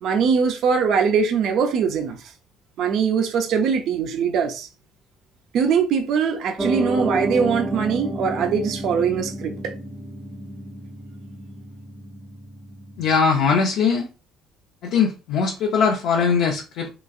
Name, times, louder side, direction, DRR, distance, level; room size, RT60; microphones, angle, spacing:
voice 1, 0.0-2.3 2.8-4.7 5.5-9.7, right 6 dB, 65° right, 0.5 m, -22 dB
Piano, 6.6-13.1, right 1 dB, 20° right, 0.5 m, -30 dB
voice 2, 13.0-14.1 14.8-16.9, left 5 dB, 75° left, 0.6 m, -20 dB
2.9 x 2.4 x 2.4 m
supercardioid pair, 80°, 0 cm